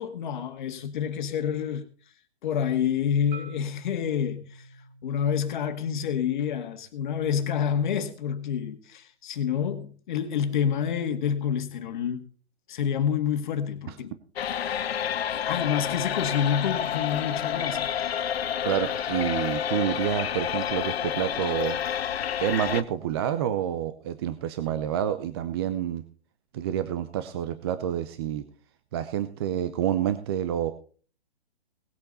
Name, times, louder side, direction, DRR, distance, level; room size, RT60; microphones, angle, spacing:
voice 1, 0.0-1.8 2.4-4.6 5.0-12.2 12.7-14.1 14.5-15.0 15.3-17.9, left 8 dB, 45° left, 1.8 m, -28 dB
Marimba xylophone, 3.3-7.5, right 3 dB, 45° right, 3.8 m, -49 dB
sound 1, 14.4-22.8, left 9 dB, 65° left, 0.9 m, -29 dB
voice 2, 18.6-21.8 22.4-26.0 26.5-28.4 28.9-30.7, right 10 dB, 25° right, 0.6 m, -28 dB
19.0 x 8.4 x 4.0 m
hypercardioid pair, 150°, 33 cm